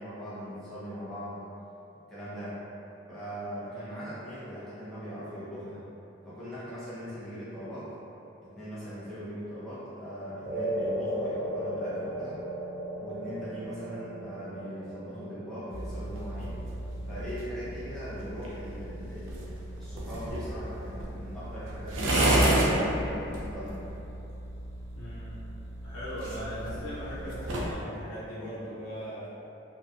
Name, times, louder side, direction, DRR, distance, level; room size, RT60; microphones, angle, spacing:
voice 1, 0.0-1.5 2.1-2.6 3.1-5.8 6.2-7.9 8.4-12.4 13.0-16.6 17.0-23.9, equal, ahead, -13 dB, 0.5 m, -40 dB
voice 2, 3.6-4.0 24.9-25.4 25.8-29.3, equal, 85° left, -10 dB, 0.8 m, -39 dB
sound 1, 10.4-18.9, right 1 dB, 60° right, 1.0 m, -37 dB
sound 2, 15.7-27.8, right 1 dB, 80° right, 0.4 m, -32 dB
2.6 x 2.1 x 2.4 m, 2.9 s
head